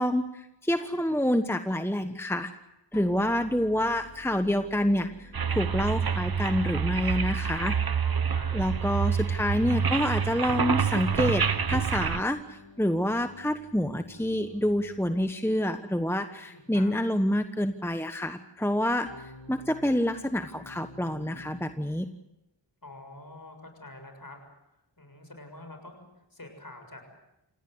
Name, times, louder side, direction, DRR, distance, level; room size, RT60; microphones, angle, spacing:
voice 1, 0.0-2.5 2.9-7.7 8.5-19.1 19.5-22.1, left 1 dB, 5° left, 8 dB, 1.2 m, -27 dB
sound 1, 2.9-7.6 11.1-15.4 19.1-21.7, left 2 dB, 80° left, 3.5 m, -50 dB
sound 2, 5.3-12.2, right 6 dB, 55° right, 1.0 m, -27 dB
voice 2, 7.6-8.5 16.4-16.9 22.8-24.4 25.0-27.1, left 2 dB, 45° left, 5 dB, 7.0 m, -46 dB
28.0 x 18.0 x 8.1 m, 0.88 s
wide cardioid pair, 45°, 45 cm